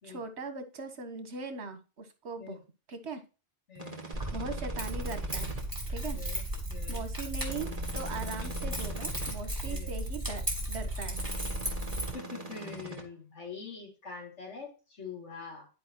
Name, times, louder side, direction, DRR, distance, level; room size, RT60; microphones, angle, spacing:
voice 1, 0.0-2.6 2.9-3.2 4.0-5.5 5.9-6.2 6.9-11.3, right 3 dB, 70° right, 9 dB, 1.5 m, -40 dB
voice 2, 3.7-4.0 6.1-7.0 9.6-9.9 12.1-15.7, left 5 dB, 80° left, 0 dB, 3.0 m, -44 dB
sound 1, 3.8-5.6 7.4-9.3 11.1-13.0, right 2 dB, 30° right, 1.9 m, -43 dB
Keys jangling, 4.1-12.1, right 1 dB, 15° right, 3.0 m, -35 dB
11.0 x 5.1 x 3.0 m, 0.32 s
omnidirectional pair, 1.2 m